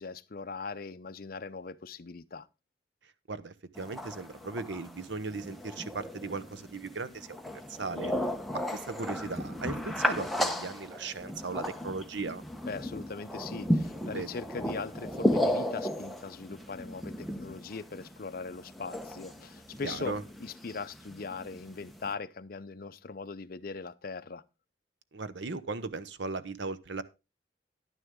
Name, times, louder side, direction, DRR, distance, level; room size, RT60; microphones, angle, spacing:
voice 1, 0.0-2.5 12.7-24.4, left 4 dB, 50° left, 0.6 m, -40 dB
voice 2, 3.3-8.1 8.5-12.4 14.1-14.3 19.8-20.2 25.1-27.0, right 4 dB, 75° right, 0.8 m, -37 dB
sound 1, 3.7-22.1, equal, ahead, 0.8 m, -35 dB
10.5 x 9.7 x 3.7 m
head